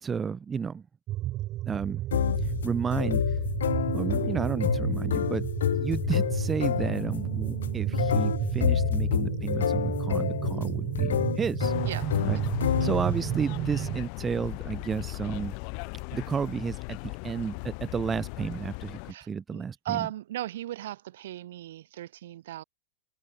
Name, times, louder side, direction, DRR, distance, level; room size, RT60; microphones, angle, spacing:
voice 1, 0.0-0.8 1.7-2.0 2.6-3.2 3.9-5.5 5.7-11.7 12.2-12.4 12.8-15.6 16.1-20.1, right 6 dB, 20° right, 2.5 m, -32 dB
sound 1, 1.1-14.0, right 15 dB, 35° right, 3.2 m, -32 dB
sound 2, 2.1-13.3, left 9 dB, 65° left, 0.4 m, -29 dB
sound 3, 11.6-19.1, left 40 dB or more, 45° left, 4.2 m, -38 dB
voice 2, 19.1-22.6, right 13 dB, 55° right, 3.2 m, -37 dB
figure-of-eight pair, 90°, 0 cm